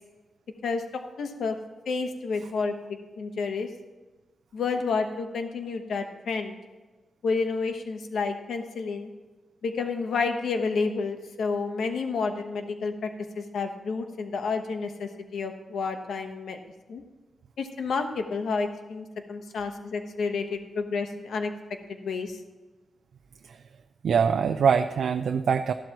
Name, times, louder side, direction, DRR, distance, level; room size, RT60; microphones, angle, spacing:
voice 1, 0.6-1.6 1.9-3.7 4.5-6.6 7.2-9.1 9.6-13.1 13.4-16.6 16.9-17.0 17.6-21.5 21.9-22.4, left 4 dB, 85° left, 6 dB, 1.0 m, -30 dB
voice 2, 24.0-25.7, right 6 dB, 75° right, 6 dB, 0.4 m, -23 dB
14.0 x 12.0 x 3.0 m, 1.2 s
wide cardioid pair, 135°, 0 cm